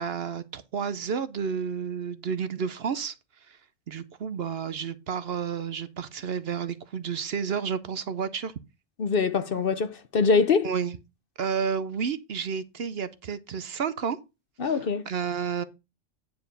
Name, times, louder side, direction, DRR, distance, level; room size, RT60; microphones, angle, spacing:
voice 1, 0.0-3.2 3.5-3.6 3.9-8.5 10.6-11.0 11.4-14.2 14.6-14.7 15.1-15.6, right 6 dB, 60° right, 0.9 m, -31 dB
voice 2, 9.0-10.7 14.6-15.1, left 5 dB, 50° left, 0.9 m, -24 dB
9.5 x 4.7 x 5.2 m
omnidirectional pair, 1.3 m